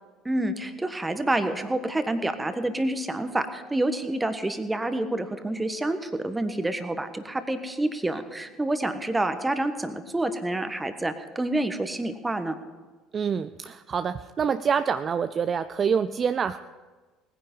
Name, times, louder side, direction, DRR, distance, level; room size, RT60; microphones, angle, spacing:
voice 1, 0.2-12.6, right 1 dB, 15° right, 9 dB, 1.4 m, -28 dB
voice 2, 13.1-16.6, right 6 dB, 35° right, 12 dB, 0.4 m, -26 dB
19.0 x 10.0 x 5.5 m, 1.3 s
figure-of-eight pair, 60°, 0 cm